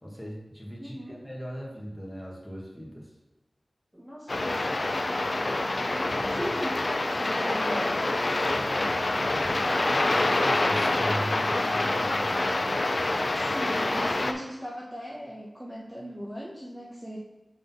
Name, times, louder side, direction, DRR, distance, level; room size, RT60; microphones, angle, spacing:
voice 1, 0.0-3.1 9.7-12.5, equal, 5° left, -4 dB, 2.0 m, -38 dB
voice 2, 0.8-1.2 3.9-4.9 5.4-9.0 13.3-17.2, equal, 10° right, -5 dB, 1.2 m, -39 dB
sound 1, 4.3-14.3, left 2 dB, 50° left, 0.6 m, -26 dB
5.0 x 3.9 x 5.8 m, 1.2 s
wide cardioid pair, 55°, 0 cm